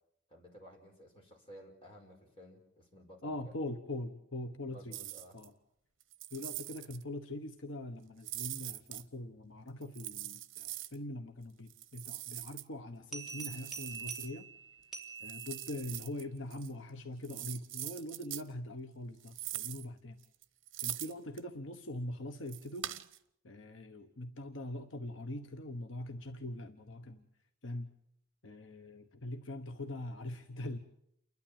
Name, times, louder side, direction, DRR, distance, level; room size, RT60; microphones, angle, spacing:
voice 1, 0.3-3.5 4.7-5.4, equal, 30° left, 0 dB, 5.3 m, -55 dB
voice 2, 3.2-5.1 5.3-5.5 6.3-14.5 15.2-20.2 20.8-22.9 23.4-27.2 27.6-27.9 28.4-30.8, left 1 dB, 70° left, 7 dB, 1.1 m, -42 dB
sound 1, 4.9-5.5 6.0-7.0 8.2-9.0 9.8-11.0 11.7-12.6 13.3-14.3 15.0-16.2 16.5-16.7 17.2-18.5 19.2-19.9 20.2-21.4 22.5-23.2, right 14 dB, 70° right, 0.9 m, -42 dB
sound 2, 13.1-16.1, right 4 dB, ahead, 3.4 m, -46 dB
29.0 x 12.0 x 8.7 m, 0.78 s
head